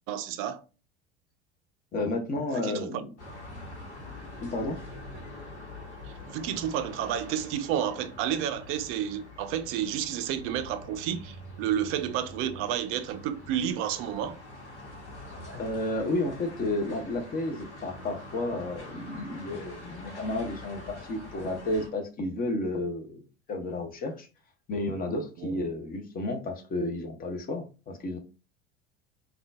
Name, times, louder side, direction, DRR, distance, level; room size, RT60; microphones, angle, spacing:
voice 1, 0.1-0.6 2.5-3.0 6.3-14.4 25.4-25.6, right 10 dB, 40° right, 0.4 m, -31 dB
voice 2, 1.9-3.1 4.4-4.8 15.5-23.2 23.5-24.3 24.7-28.2, left 2 dB, 25° left, 0.7 m, -32 dB
sound 1, 3.2-21.9, left 1 dB, 80° left, 1.1 m, -45 dB
3.6 x 2.3 x 2.4 m
figure-of-eight pair, 75°, 34 cm